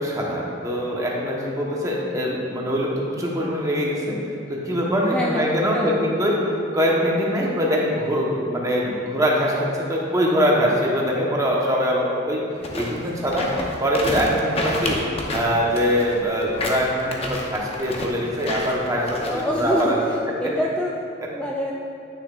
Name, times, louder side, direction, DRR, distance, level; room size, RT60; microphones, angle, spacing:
voice 1, 0.0-4.2 4.5-6.4 6.7-12.4 12.7-13.5 13.8-15.0 15.3-20.0, equal, 20° right, -3 dB, 1.0 m, -23 dB
voice 2, 5.0-6.1 19.2-20.9 21.3-21.7, equal, 5° left, -2 dB, 0.3 m, -26 dB
sound 1, 12.5-19.8, left 1 dB, 30° left, 0.8 m, -29 dB
9.5 x 6.4 x 2.4 m, 2.7 s
head